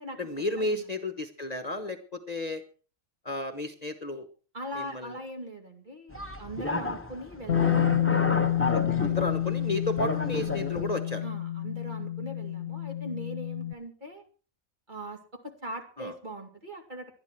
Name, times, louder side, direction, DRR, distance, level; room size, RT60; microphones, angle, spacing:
voice 1, 0.2-2.6 3.2-4.3 4.7-5.2 8.7-11.3 16.0-16.1, left 2 dB, 30° left, 8 dB, 1.2 m, -33 dB
voice 2, 4.5-8.7 11.2-14.2 14.9-15.2 15.4-17.1, right 1 dB, 35° right, 3 dB, 2.6 m, -40 dB
sound 1, 6.1-10.9, left 2 dB, 10° left, 1.0 m, -32 dB
Bass guitar, 7.5-13.7, left 11 dB, 65° left, 1.2 m, -29 dB
19.5 x 12.0 x 4.6 m, 0.39 s
omnidirectional pair, 1.4 m